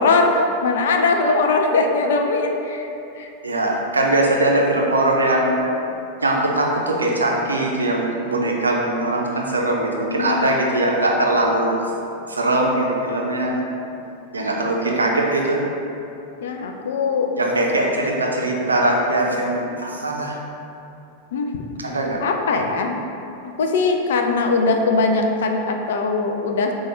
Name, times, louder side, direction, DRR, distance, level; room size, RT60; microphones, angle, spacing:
voice 1, 0.0-2.9 3.2-3.3 10.0-10.4 16.4-17.3 17.6-17.7 21.3-21.6 22.2-22.9 23.4-26.7, left 3 dB, 60° left, 3 dB, 0.3 m, -20 dB
voice 2, 3.4-5.6 6.2-11.8 12.3-13.6 14.3-15.6 17.4-20.4 21.8-22.2, right 1 dB, 75° right, -1 dB, 0.4 m, -21 dB
4.3 x 2.2 x 3.0 m, 2.8 s
figure-of-eight pair, 90°, 0 cm